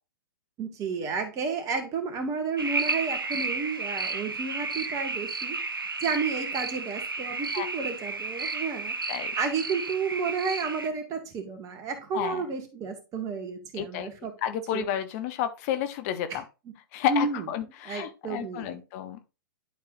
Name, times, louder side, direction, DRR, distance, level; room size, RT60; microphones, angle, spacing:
voice 1, 0.6-5.6 6.0-8.9 9.4-14.3 14.7-14.8 16.3-16.4 17.1-17.5 17.9-18.8, right 5 dB, 30° right, 5 dB, 2.1 m, -31 dB
sound 1, 2.6-10.9, right 3 dB, 85° right, 0.9 m, -32 dB
voice 2, 13.8-14.1 14.4-16.4 16.9-19.2, left 10 dB, 45° left, 10 dB, 0.9 m, -31 dB
11.0 x 4.7 x 2.6 m, 0.29 s
figure-of-eight pair, 110°, 11 cm